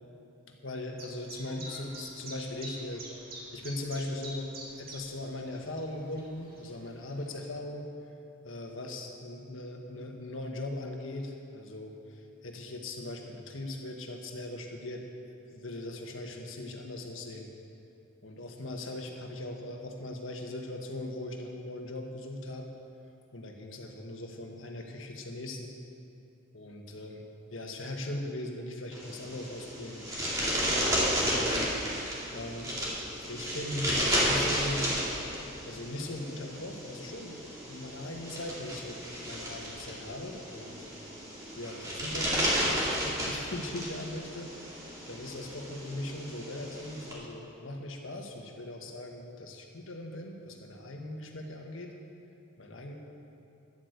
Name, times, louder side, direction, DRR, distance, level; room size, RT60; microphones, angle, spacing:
voice 1, 0.5-4.5 4.8-7.9 8.4-15.0 15.5-17.5 18.2-22.7 23.3-25.8 26.5-27.3 27.5-30.1 30.4-32.0 32.3-32.7 33.1-34.9 35.6-37.4 37.7-39.0 39.3-40.8 41.5-44.7 45.1-51.9 52.6-52.9, left 1 dB, 85° left, 2 dB, 1.5 m, -39 dB
Chirp tweet, 1.0-7.4, right 1 dB, 50° right, 2.0 m, -47 dB
sound 1, 28.9-47.1, equal, 15° right, 2.3 m, -33 dB
11.5 x 8.1 x 8.1 m, 2.7 s
head